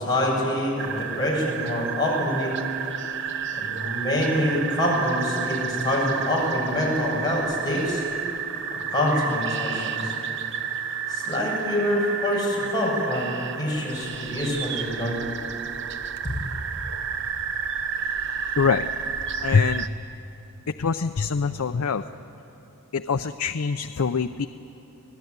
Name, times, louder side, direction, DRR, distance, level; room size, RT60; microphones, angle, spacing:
voice 1, 0.0-2.6 3.6-8.0 8.9-10.1 11.1-15.2 16.2-16.3, left 1 dB, 20° left, -4 dB, 6.9 m, -25 dB
sound 1, 0.8-19.9, right 7 dB, 55° right, 0.9 m, -31 dB
voice 2, 18.6-18.9 19.4-19.9 20.8-22.0 22.9-24.5, left 5 dB, 80° left, 8 dB, 0.6 m, -24 dB
28.0 x 19.5 x 9.5 m, 2.9 s
head